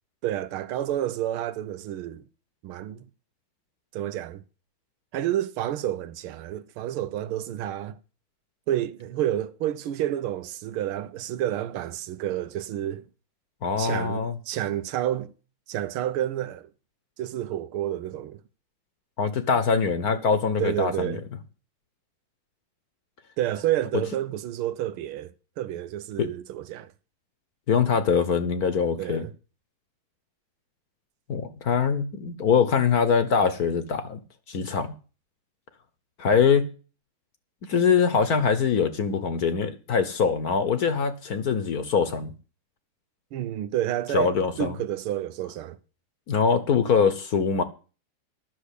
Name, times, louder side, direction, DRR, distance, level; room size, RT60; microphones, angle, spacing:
voice 1, 0.2-2.2 2.6-3.1 3.9-4.4 5.1-8.0 8.7-13.0 13.8-15.3 15.7-16.7 17.2-18.4 20.6-21.2 23.4-26.9 29.0-29.3 43.3-44.3 44.6-45.8, right 12 dB, 85° right, 1.6 m, -29 dB
voice 2, 13.6-14.4 19.2-21.2 26.2-26.3 27.7-29.3 31.3-34.2 34.5-34.9 36.2-36.7 37.7-42.3 44.1-44.7 46.3-47.6, left 6 dB, 55° left, 1.3 m, -23 dB
11.5 x 6.5 x 8.3 m
omnidirectional pair, 2.3 m